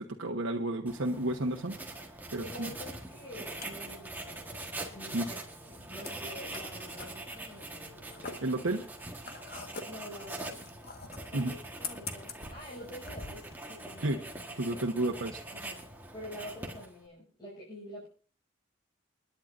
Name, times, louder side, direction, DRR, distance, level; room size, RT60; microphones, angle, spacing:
voice 1, 0.0-1.7 2.3-2.7 5.1-5.3 8.4-8.8 11.3-11.5 14.0-14.2 14.6-15.4, right 1 dB, 90° right, 1 dB, 1.2 m, -31 dB
Writing, 0.9-17.1, right 2 dB, 10° right, 1.4 m, -43 dB
voice 2, 2.4-4.6 4.9-8.4 9.9-10.6 11.3-14.2 14.5-14.8 15.5-15.8 16.1-18.1, equal, 20° left, -7 dB, 6.6 m, -47 dB
sound 1, 3.6-13.5, left 5 dB, 50° left, 1.6 m, -46 dB
29.0 x 10.5 x 2.6 m, 0.40 s
head